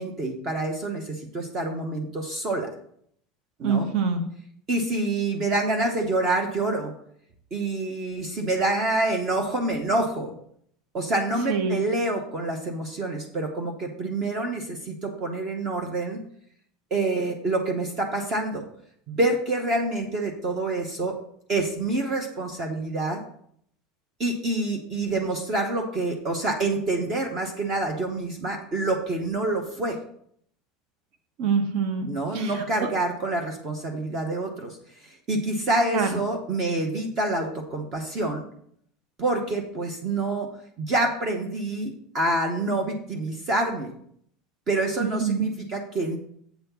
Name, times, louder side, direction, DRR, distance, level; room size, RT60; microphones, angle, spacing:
voice 1, 0.0-2.7 3.6-3.9 4.7-6.9 7.5-10.3 10.9-16.2 16.9-18.6 19.1-21.2 21.5-23.2 24.2-30.0 32.1-34.8 35.0-38.4 39.2-40.5 40.8-43.9 44.7-46.2, right 2 dB, 25° right, 3 dB, 1.0 m, -27 dB
voice 2, 3.6-4.2 11.5-11.8 31.4-32.1 32.3-32.5 35.9-36.1 45.2-45.5, right 5 dB, 50° right, 6 dB, 1.1 m, -24 dB
8.1 x 4.3 x 6.9 m, 0.65 s
cardioid pair, 180°, 0 cm